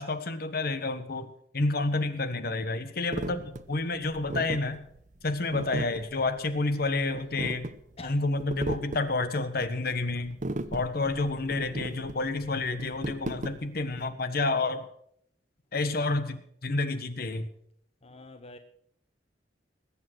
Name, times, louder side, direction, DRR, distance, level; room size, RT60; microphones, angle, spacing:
voice 1, 0.0-4.8 5.2-7.7 8.0-10.4 10.7-14.9 15.7-17.5, left 3 dB, 55° left, 1.3 m, -29 dB
sound 1, 3.1-14.1, right 2 dB, 45° right, 0.9 m, -36 dB
voice 2, 18.0-18.6, left 2 dB, 35° left, 0.9 m, -45 dB
20.5 x 8.7 x 6.3 m
head